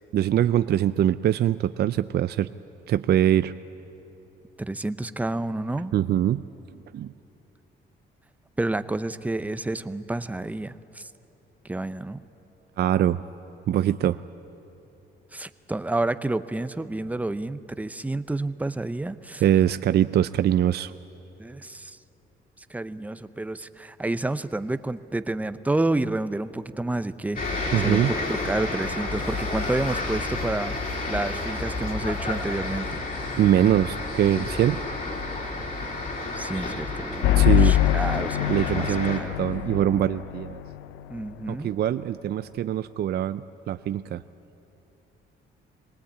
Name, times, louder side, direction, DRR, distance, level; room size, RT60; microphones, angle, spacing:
voice 1, 0.1-2.5 2.9-3.5 5.9-6.4 6.9-7.1 12.8-13.2 13.7-14.2 19.4-20.9 27.7-28.1 33.4-34.8 37.4-37.8 38.5-40.6 41.5-44.2, right 11 dB, 55° right, 13 dB, 0.4 m, -23 dB
voice 2, 4.6-5.9 8.6-11.1 11.6-12.2 15.3-19.4 21.4-22.0 22.7-28.0 28.3-33.0 36.3-39.4 41.1-41.7, right 2 dB, 5° right, 12 dB, 0.6 m, -30 dB
sound 1, 27.4-39.2, left 2 dB, 45° left, 3.6 m, -31 dB
sound 2, 37.2-40.8, left 13 dB, 85° left, 0.4 m, -23 dB
20.5 x 18.5 x 8.5 m, 3.0 s
cardioid pair, 90°, 20 cm